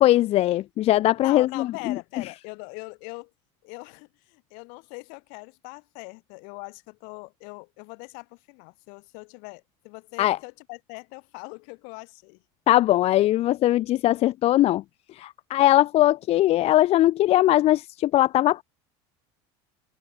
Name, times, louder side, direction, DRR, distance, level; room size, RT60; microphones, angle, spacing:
voice 1, 0.0-2.0 10.2-10.4 12.7-14.8 15.1-18.6, left 14 dB, 45° left, 0.6 m, -20 dB
voice 2, 1.2-3.3 3.6-12.4, left 35 dB, 70° left, 2.7 m, -41 dB
supercardioid pair, 120°, 14 cm